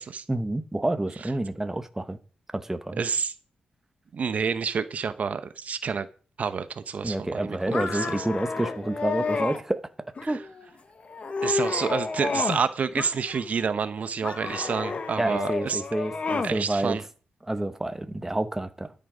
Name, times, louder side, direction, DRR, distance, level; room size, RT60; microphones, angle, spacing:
voice 1, 0.3-2.2 2.5-3.0 7.0-9.8 10.2-10.4 15.2-17.0 17.4-18.9, right 1 dB, 15° right, 1.1 m, -29 dB
voice 2, 3.0-3.3 4.1-6.1 6.4-7.6 7.9-8.1 10.2-10.4 11.4-15.8 16.4-17.0, right 6 dB, 55° right, 1.0 m, -28 dB
sound 1, 7.7-9.6 10.2-10.7 11.1-12.7 13.0-13.7 14.2-16.6, left 4 dB, 45° left, 1.3 m, -30 dB
13.0 x 7.7 x 5.0 m
cardioid pair, 85°, 3 cm